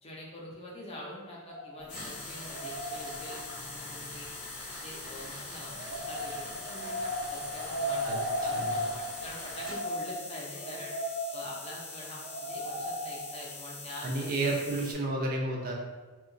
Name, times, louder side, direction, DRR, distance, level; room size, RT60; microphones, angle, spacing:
voice 1, 0.0-4.3 4.8-10.9 11.3-14.6, left 1 dB, 25° left, -4 dB, 0.5 m, -45 dB
sound 1, 1.5-3.8 5.7-13.4, equal, 80° right, 0.7 m, -36 dB
Tools, 1.8-9.8, equal, 5° right, 0.8 m, -45 dB
sound 2, 1.9-14.9, left 4 dB, 75° left, 0.5 m, -44 dB
voice 2, 14.0-15.7, right 2 dB, 40° right, 0 dB, 0.3 m, -31 dB
2.8 x 2.2 x 2.5 m, 1.3 s
head